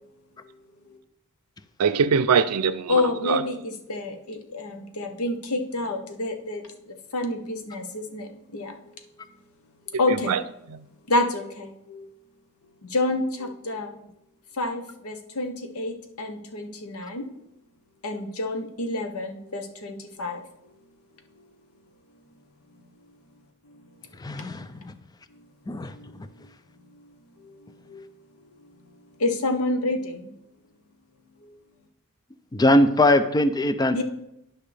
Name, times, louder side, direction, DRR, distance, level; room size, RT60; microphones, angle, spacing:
voice 1, 1.8-3.4 10.1-10.4 10.7-10.9, right 6 dB, 90° right, 0.5 m, -23 dB
voice 2, 2.9-6.6 7.1-8.7 10.0-10.3 11.1-12.1 12.9-13.9 14.6-17.3 18.0-20.4 27.9-28.0 29.2-30.3 33.9-34.0, left 2 dB, 70° left, 0.9 m, -28 dB
voice 3, 24.2-24.9 25.7-25.9 32.5-34.0, left 1 dB, 15° left, 0.4 m, -21 dB
10.5 x 5.6 x 3.3 m
head